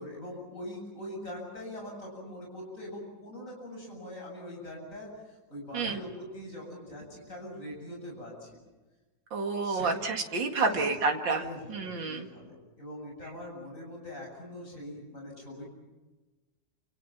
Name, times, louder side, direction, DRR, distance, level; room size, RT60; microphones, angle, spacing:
voice 1, 0.0-8.6 9.6-10.0 10.5-10.9 11.3-15.7, left 1 dB, 45° left, -1 dB, 8.5 m, -42 dB
voice 2, 9.3-11.4 11.7-12.3, right 4 dB, 85° right, 3 dB, 2.9 m, -29 dB
28.5 x 28.0 x 6.0 m, 1.2 s
omnidirectional pair, 2.0 m